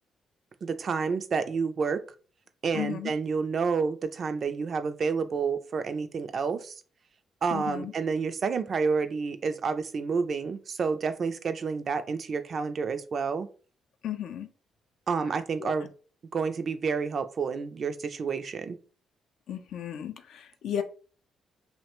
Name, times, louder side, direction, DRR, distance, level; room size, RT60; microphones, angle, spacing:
voice 1, 0.6-2.0 2.6-6.7 7.4-13.5 15.1-15.9 16.3-18.8, right 5 dB, 50° right, 10 dB, 0.3 m, -29 dB
voice 2, 2.7-3.1 7.5-7.9 14.0-14.5 15.6-15.7 19.5-20.8, left 10 dB, 75° left, 7 dB, 0.4 m, -34 dB
2.8 x 2.1 x 2.9 m, 0.38 s
cardioid pair, 90°, 0 cm